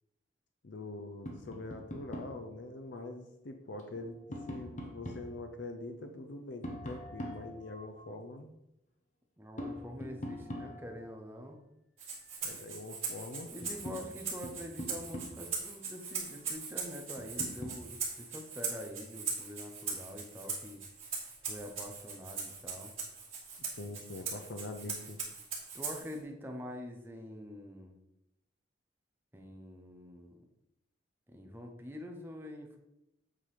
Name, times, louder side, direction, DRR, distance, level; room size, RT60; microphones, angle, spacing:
voice 1, 0.6-4.2 4.5-8.5 12.4-13.5 23.8-25.2, left 2 dB, 70° left, 5 dB, 0.6 m, -44 dB
Tap, 1.3-2.4 3.8-5.3 6.6-8.1 9.6-11.1 12.9-13.0 13.4-15.6 17.2-17.9, equal, 40° left, 1.1 m, -43 dB
voice 2, 9.4-11.6 13.5-20.8 21.5-22.9 25.7-27.9 29.3-30.4 31.3-32.8, left 1 dB, 10° right, 2 dB, 1.0 m, -45 dB
Rattle (instrument), 12.0-26.2, right 5 dB, 30° right, 2.7 m, -40 dB
8.3 x 3.9 x 5.0 m, 0.87 s
head